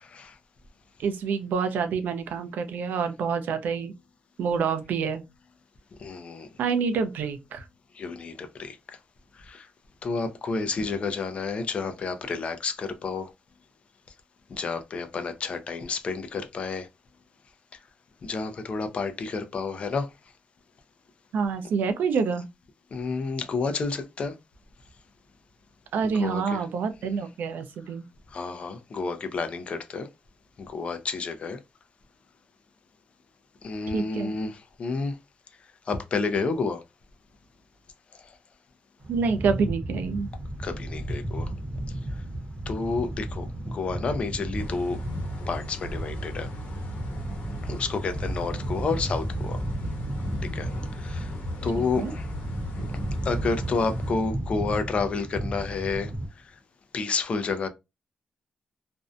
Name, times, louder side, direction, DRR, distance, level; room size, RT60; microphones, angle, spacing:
voice 1, 1.0-3.9 4.4-5.2 6.6-7.7 21.3-22.5 25.9-28.0 33.9-34.3 39.1-40.3 51.8-52.1, right 5 dB, 80° right, 0.5 m, -27 dB
voice 2, 6.0-6.5 8.0-8.8 9.5-9.7 10.0-13.3 14.5-16.9 18.2-20.1 22.9-24.3 26.2-26.6 28.3-30.1 30.7-31.6 33.6-35.1 35.9-36.8 40.6-41.5 42.7-45.0 45.5-46.5 47.6-49.6 50.5-50.7 51.0-51.3 51.6-52.2 53.2-56.1 56.9-57.7, left 4 dB, 40° left, 0.4 m, -30 dB
sound 1, 39.0-56.3, right 1 dB, 30° right, 0.8 m, -34 dB
sound 2, 44.6-54.1, equal, 85° left, 1.0 m, -37 dB
2.5 x 2.1 x 2.4 m
wide cardioid pair, 155°, 3 cm